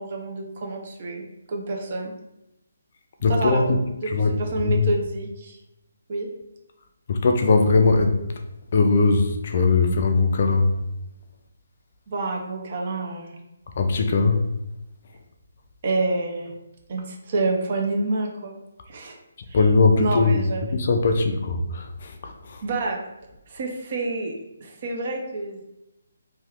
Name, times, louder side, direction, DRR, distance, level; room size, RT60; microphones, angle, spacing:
voice 1, 0.0-2.1 3.3-3.7 4.0-5.6 6.1-6.3 12.1-13.4 15.8-16.5 16.9-18.5 18.9-19.2 19.5-19.6 20.0-20.6 22.6-23.0 23.5-24.3 24.6-25.6, right 2 dB, 45° right, 1 dB, 0.7 m, -28 dB
voice 2, 3.2-3.8 4.1-4.4 4.6-4.9 7.1-8.2 8.7-10.7 13.8-14.5 19.5-22.6, left 4 dB, 50° left, 5 dB, 0.4 m, -20 dB
2.9 x 2.3 x 3.5 m, 0.89 s
hypercardioid pair, 155°, 0 cm